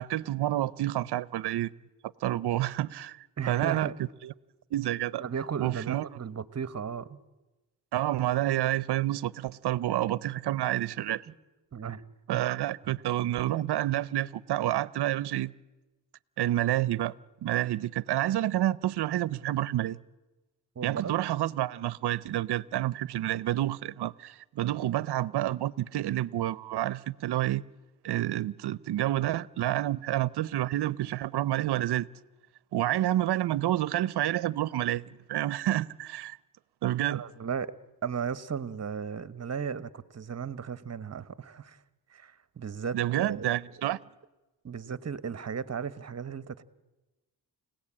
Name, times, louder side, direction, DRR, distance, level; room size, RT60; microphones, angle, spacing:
voice 1, 0.0-1.7 2.2-3.9 4.2-4.3 4.7-5.2 5.6-6.1 7.9-11.3 12.3-15.5 16.4-17.1 17.4-20.0 20.8-27.6 28.0-32.1 32.7-36.4 36.8-37.2 42.9-44.0, right 14 dB, 70° right, 0.7 m, -29 dB
voice 2, 3.4-3.9 5.2-7.2 11.3-11.4 11.7-12.0 12.3-12.4 20.7-21.2 37.1-37.7 38.0-41.8 42.1-43.5 44.6-46.6, right 7 dB, 40° right, 1.2 m, -35 dB
29.5 x 17.5 x 8.7 m
cardioid pair, 70°, 41 cm